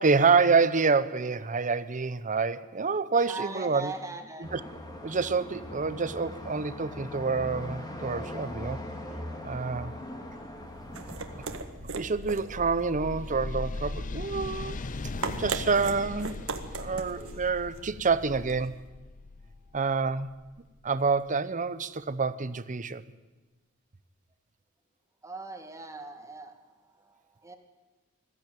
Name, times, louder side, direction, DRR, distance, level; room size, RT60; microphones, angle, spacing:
voice 1, 0.0-3.9 4.5-4.6 5.0-8.8 9.4-9.9 11.9-14.8 15.2-16.5 16.7-18.8 19.7-20.3 20.8-23.0, right 4 dB, 35° right, 0.8 m, -27 dB
voice 2, 3.2-4.5 14.2-15.6 16.8-17.3 19.6-19.8 25.2-27.6, right 3 dB, 15° right, 1.9 m, -42 dB
sound 1, 4.4-11.6, left 1 dB, 20° left, 2.3 m, -40 dB
sound 2, 10.5-21.1, left 3 dB, 40° left, 0.6 m, -40 dB
sound 3, 10.6-18.8, right 4 dB, 70° right, 1.6 m, -40 dB
20.5 x 14.0 x 9.2 m
head